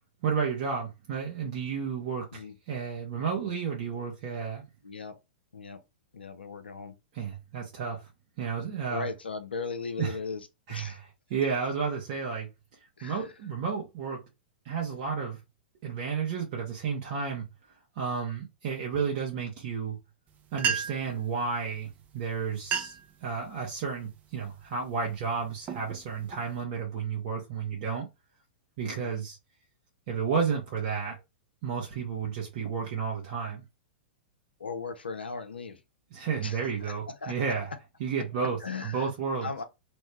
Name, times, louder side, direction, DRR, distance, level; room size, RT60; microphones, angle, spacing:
voice 1, 0.2-4.6 7.1-8.1 8.4-9.1 10.0-10.1 10.7-11.0 11.3-12.5 13.0-14.2 14.6-15.4 15.8-17.5 18.0-20.0 20.5-28.1 28.8-29.4 30.1-31.2 31.6-33.6 36.1-37.7 38.0-39.5, right 6 dB, 50° right, 1.0 m, -32 dB
voice 2, 4.8-5.2 5.5-5.8 6.1-7.0 8.9-11.0 13.0-13.3 28.8-29.2 34.6-35.8 36.4-37.6 38.6-39.1 39.4-39.6, left 4 dB, 90° left, 0.6 m, -38 dB
sound 1, 20.3-20.4 20.5-21.2 22.0-22.2 22.5-23.1 23.6-24.0 24.6-24.9 25.4-26.6, right 7 dB, 30° right, 0.5 m, -33 dB
3.2 x 2.1 x 3.1 m
hypercardioid pair, 105°, 5 cm